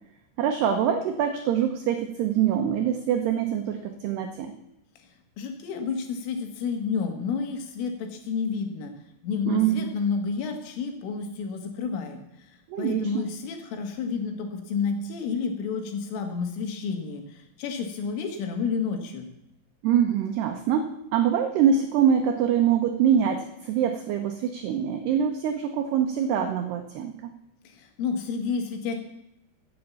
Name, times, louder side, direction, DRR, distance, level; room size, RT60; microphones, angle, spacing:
voice 1, 0.4-4.5 9.5-9.9 12.7-13.2 19.8-27.3, right 8 dB, 85° right, 5 dB, 2.3 m, -24 dB
voice 2, 5.4-8.9 9.2-12.5 12.8-19.3 27.7-29.0, left 5 dB, 75° left, 5 dB, 4.3 m, -30 dB
16.0 x 8.5 x 7.1 m, 0.84 s
omnidirectional pair, 6.0 m